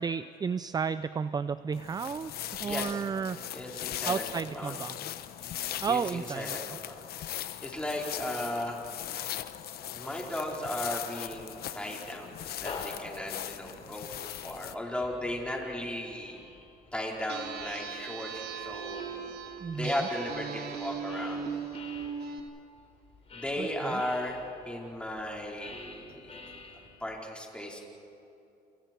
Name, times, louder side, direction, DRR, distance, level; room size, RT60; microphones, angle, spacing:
voice 1, 0.0-3.4 4.1-5.0 5.8-6.6 19.6-19.9 23.6-24.0, right 6 dB, 25° right, 14 dB, 0.5 m, -32 dB
sound 1, 1.7-14.7, left 12 dB, 65° left, 1.0 m, -39 dB
voice 2, 2.6-3.0 3.5-4.7 5.9-7.0 7.6-8.8 9.1-9.4 9.9-14.1 14.4-16.4 16.9-19.4 19.7-21.4 23.3-26.3 27.0-27.8, left 1 dB, 5° left, -2 dB, 4.7 m, -36 dB
sound 2, 12.4-22.1 22.7-27.2, left 4 dB, 35° left, 4.1 m, -49 dB
sound 3, 17.3-22.4, right 6 dB, 70° right, 2.8 m, -38 dB
29.0 x 28.0 x 4.6 m, 2.7 s
cardioid pair, 110°, 17 cm